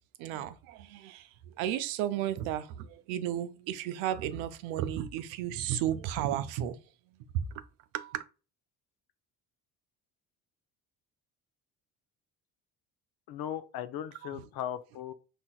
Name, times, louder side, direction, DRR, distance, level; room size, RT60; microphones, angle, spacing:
voice 1, 0.2-6.8 7.9-8.2 14.2-14.4, right 11 dB, 80° right, 0.5 m, -34 dB
voice 2, 13.3-15.1, left 10 dB, 55° left, 0.5 m, -37 dB
4.1 x 2.9 x 2.2 m
hypercardioid pair, 60°, 45 cm